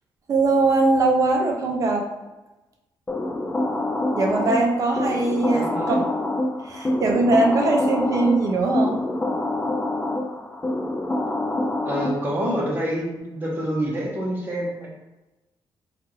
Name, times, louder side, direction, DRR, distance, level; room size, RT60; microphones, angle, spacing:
voice 1, 0.3-2.1 4.2-6.1 6.6-9.0, right 2 dB, 40° right, 1 dB, 0.6 m, -21 dB
sound 1, 3.1-12.5, left 1 dB, 15° left, 0.3 m, -26 dB
voice 2, 5.5-6.0 11.8-14.9, equal, 25° right, -3 dB, 0.9 m, -27 dB
3.6 x 2.4 x 3.1 m, 1.1 s
wide cardioid pair, 150°, 9 cm